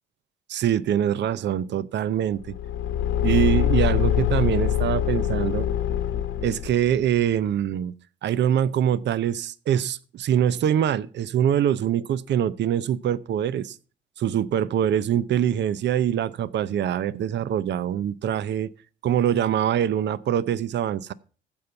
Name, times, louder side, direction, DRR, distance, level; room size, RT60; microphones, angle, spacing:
voice 1, 0.5-2.5 3.2-5.7 6.4-7.9 8.2-13.8 14.2-18.7 19.0-21.1, right 10 dB, 60° right, 0.6 m, -24 dB
Car / Engine, 2.4-7.0, left 10 dB, 80° left, 1.2 m, -24 dB
14.5 x 5.4 x 5.7 m
cardioid pair, 90°, 20 cm